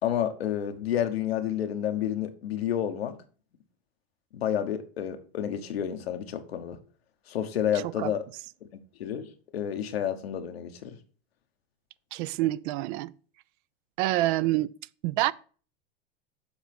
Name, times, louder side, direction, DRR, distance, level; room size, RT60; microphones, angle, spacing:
voice 1, 0.0-3.2 4.3-6.8 7.3-8.2 8.7-11.0, left 10 dB, 85° left, 1.1 m, -30 dB
voice 2, 12.1-13.1 14.0-14.7 15.0-15.3, right 17 dB, 55° right, 0.4 m, -26 dB
7.1 x 4.0 x 5.8 m
hypercardioid pair, 105°, 30 cm